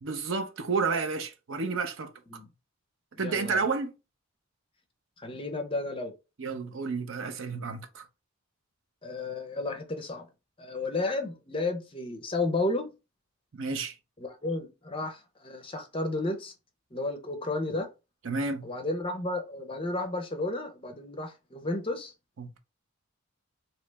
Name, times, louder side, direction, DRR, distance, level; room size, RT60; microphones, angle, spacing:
voice 1, 0.0-2.1 3.2-3.9 6.4-8.0 13.5-13.9 18.2-18.6 22.4-22.6, right 4 dB, 60° right, 0.5 m, -31 dB
voice 2, 3.2-3.6 5.2-6.1 9.0-10.3 10.6-12.9 14.2-16.5 16.9-17.9 18.6-22.1, left 2 dB, 25° left, 0.5 m, -32 dB
3.1 x 2.8 x 3.3 m
head